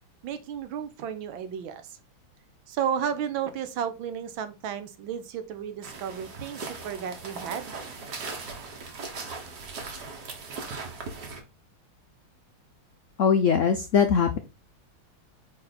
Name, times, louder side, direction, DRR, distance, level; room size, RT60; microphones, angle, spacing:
voice 1, 0.2-2.0 2.7-7.7, right 8 dB, 80° right, 10 dB, 1.6 m, -33 dB
sound 1, 5.8-11.4, right 4 dB, 55° right, 1.9 m, -39 dB
voice 2, 13.2-14.4, left 6 dB, 75° left, 7 dB, 0.7 m, -21 dB
5.3 x 4.9 x 4.1 m, 0.27 s
omnidirectional pair, 2.2 m